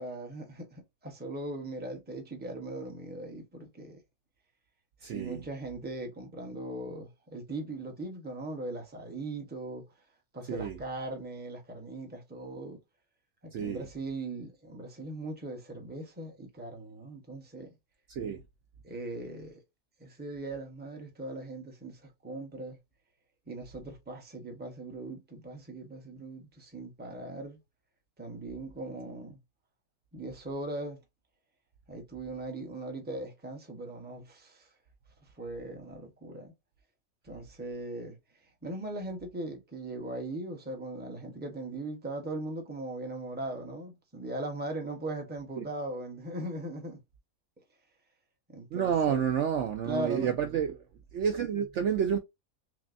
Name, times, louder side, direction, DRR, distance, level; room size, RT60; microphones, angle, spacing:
voice 1, 0.0-4.0 5.0-9.8 10.3-12.8 13.4-17.7 18.8-19.6 20.0-22.8 23.5-27.6 28.2-29.4 30.1-31.0 31.9-34.7 35.4-36.5 37.2-38.2 38.6-47.0 48.5-49.3 49.8-50.3, right 2 dB, 10° right, 0.6 m, -39 dB
voice 2, 5.0-5.4 10.5-10.8 13.5-13.8 18.1-18.4 45.6-45.7 48.7-50.7 51.1-52.2, right 8 dB, 65° right, 0.8 m, -29 dB
6.0 x 2.1 x 2.5 m
omnidirectional pair, 1.6 m